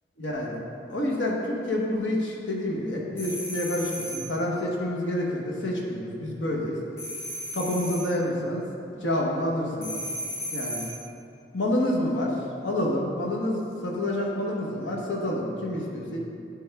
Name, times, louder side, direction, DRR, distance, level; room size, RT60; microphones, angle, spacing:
voice 1, 0.2-0.6 0.9-6.8 7.5-10.0 10.5-10.9 11.5-16.2, left 1 dB, 85° left, -2 dB, 1.0 m, -28 dB
sound 1, 3.2-4.4 7.0-8.2 9.8-11.1, equal, 15° left, 0.6 m, -35 dB
10.0 x 3.4 x 3.4 m, 2.5 s
head